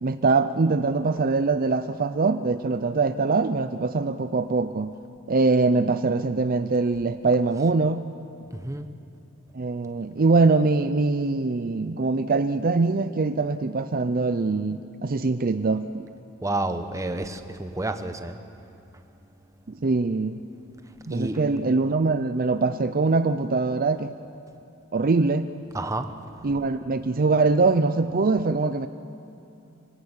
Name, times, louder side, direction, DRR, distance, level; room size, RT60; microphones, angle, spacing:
voice 1, 0.0-4.9 5.3-8.1 9.5-16.1 19.7-20.4 21.1-24.1 24.9-25.5 26.4-28.9, right 3 dB, 45° right, 10 dB, 0.5 m, -23 dB
voice 2, 8.5-8.9 16.4-18.4 21.1-21.4 25.7-26.1, right 2 dB, 15° right, 8 dB, 1.0 m, -29 dB
24.5 x 18.0 x 8.2 m, 2.8 s
head